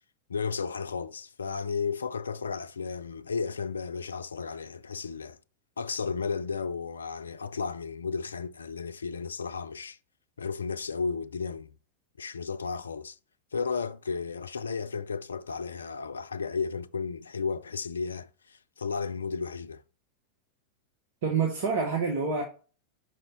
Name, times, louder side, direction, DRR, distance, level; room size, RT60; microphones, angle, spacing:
voice 1, 0.3-5.4 5.8-10.0 10.4-11.7 12.2-13.2 13.5-19.8, left 5 dB, 70° left, 0.4 m, -33 dB
voice 2, 21.2-22.4, right 5 dB, 55° right, 1.2 m, -27 dB
5.3 x 4.7 x 4.3 m
figure-of-eight pair, 90°, 0 cm